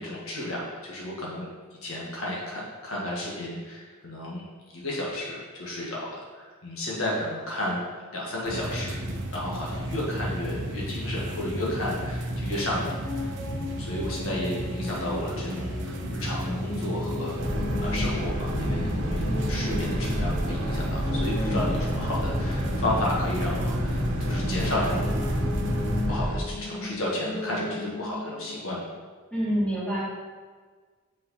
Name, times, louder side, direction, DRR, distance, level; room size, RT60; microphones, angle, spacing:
voice 1, 0.0-1.5 1.8-4.4 4.7-7.8 8.1-9.0 9.3-12.9 13.2-17.4 17.8-25.1 25.5-25.6 26.1-28.9, left 1 dB, 70° left, -4 dB, 1.7 m, -32 dB
sound 1, 8.4-26.1, right 1 dB, 55° right, 0.8 m, -33 dB
sound 2, 12.3-28.5, left 2 dB, 25° left, 0.8 m, -37 dB
Boat Water vehicle, 17.4-26.4, equal, 70° right, 1.1 m, -29 dB
voice 2, 21.4-22.1 29.3-30.0, equal, 5° left, -8 dB, 2.0 m, -28 dB
6.1 x 5.6 x 4.2 m, 1.5 s
head